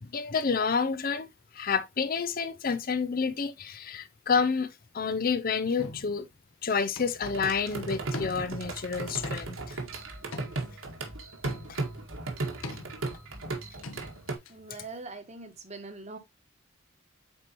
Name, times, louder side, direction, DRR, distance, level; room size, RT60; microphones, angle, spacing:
voice 1, 0.0-1.3 1.5-6.3 6.6-9.8, left 5 dB, 45° left, 0.5 m, -29 dB
sound 1, 5.8-6.4 7.0-7.4 7.7-7.8 8.1-8.8 9.2-9.8 10.3-11.1 11.4-12.0 12.6-13.2 13.5-13.6 13.8-14.5, left 2 dB, 80° left, 1.3 m, -42 dB
sound 2, 7.2-14.4, right 3 dB, 70° right, 1.9 m, -36 dB
voice 2, 14.5-16.2, right 3 dB, 35° right, 1.3 m, -42 dB
8.4 x 4.5 x 2.9 m
head